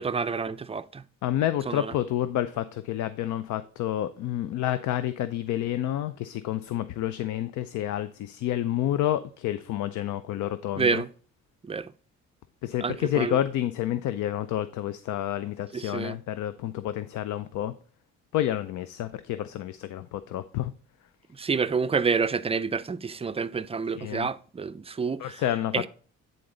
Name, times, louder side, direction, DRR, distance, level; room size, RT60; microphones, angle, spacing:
voice 1, 0.0-1.0 1.7-1.9 10.8-11.1 11.6-11.9 12.8-13.4 15.7-16.2 21.3-25.4 25.7-25.9, right 5 dB, 20° right, 0.4 m, -28 dB
voice 2, 1.2-11.0 12.6-17.7 18.3-20.7 24.0-24.3 25.2-25.9, left 12 dB, 75° left, 0.5 m, -29 dB
9.7 x 3.9 x 3.8 m
cardioid pair, 90°, 30 cm